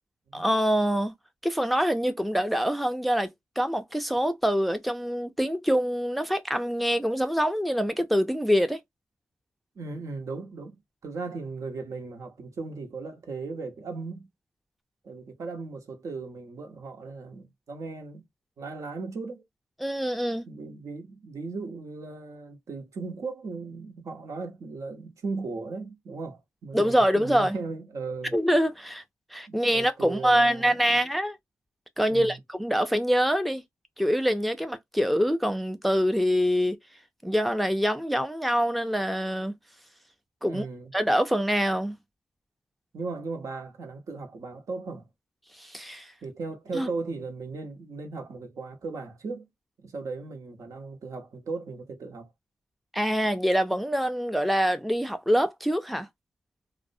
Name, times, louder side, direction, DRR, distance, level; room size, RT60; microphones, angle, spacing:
voice 1, 0.3-1.1 1.4-8.8 19.8-20.5 26.7-27.6 28.3-29.0 29.3-31.4 32.0-33.6 34.0-36.8 37.2-39.5 40.4-40.6 40.9-42.0 45.6-46.1 46.7-46.9 52.9-56.1, equal, ahead, 0.4 m, -25 dB
voice 2, 9.8-10.7 11.0-14.3 15.0-18.3 18.6-19.4 20.5-28.4 29.5-30.9 32.0-32.4 40.4-40.9 42.9-45.1 46.2-49.5 49.8-52.3, right 4 dB, 70° right, 0.8 m, -37 dB
2.5 x 2.0 x 2.5 m
cardioid pair, 65°, 6 cm